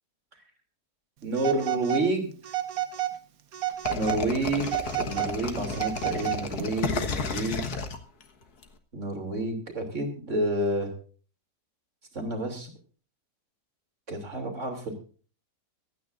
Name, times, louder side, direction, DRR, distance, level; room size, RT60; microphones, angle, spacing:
voice 1, 1.2-2.3 3.9-7.6 8.9-10.9 12.1-12.7 14.1-14.9, right 1 dB, 50° right, 4 dB, 3.4 m, -29 dB
Telephone, 1.3-2.1 2.4-3.2 3.5-4.2 4.6-6.6, right 13 dB, 70° right, 1.4 m, -31 dB
sound 1, 3.9-8.6, left 5 dB, 75° left, 1.9 m, -32 dB
25.0 x 9.4 x 2.5 m, 0.40 s
omnidirectional pair, 1.7 m